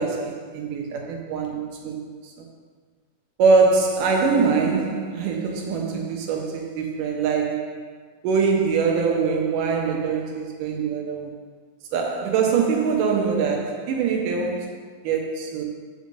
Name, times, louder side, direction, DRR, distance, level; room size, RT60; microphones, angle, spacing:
voice 1, 0.0-2.1 2.4-2.5 3.4-7.8 8.2-11.3 11.9-15.6, right 5 dB, 85° right, 2.6 m, -23 dB
5.8 x 5.3 x 6.4 m
omnidirectional pair, 3.7 m